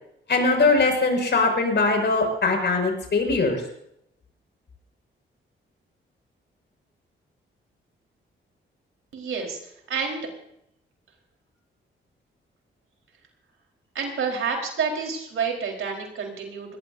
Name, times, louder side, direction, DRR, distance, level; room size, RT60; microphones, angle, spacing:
voice 1, 0.3-3.6, left 3 dB, 55° left, 3 dB, 6.3 m, -21 dB
voice 2, 9.1-10.2 13.9-16.8, right 5 dB, 80° right, 1 dB, 4.5 m, -29 dB
21.5 x 18.5 x 2.8 m, 0.76 s
cardioid pair, 70°, 21 cm